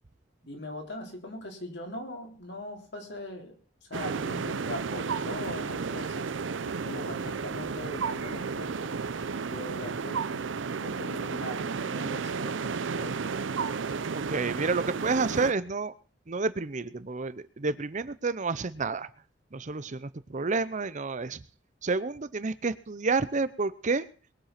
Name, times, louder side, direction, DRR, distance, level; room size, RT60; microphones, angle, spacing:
voice 1, 0.5-3.6 3.9-10.4 10.8-13.4, left 1 dB, 65° left, 2 dB, 3.8 m, -41 dB
sound 1, 3.9-15.5, right 5 dB, 85° right, 0.6 m, -32 dB
voice 2, 14.1-15.9 16.3-19.1 19.5-21.4 21.8-24.0, right 4 dB, 40° right, 15 dB, 0.7 m, -30 dB
21.5 x 7.7 x 5.9 m, 0.38 s
head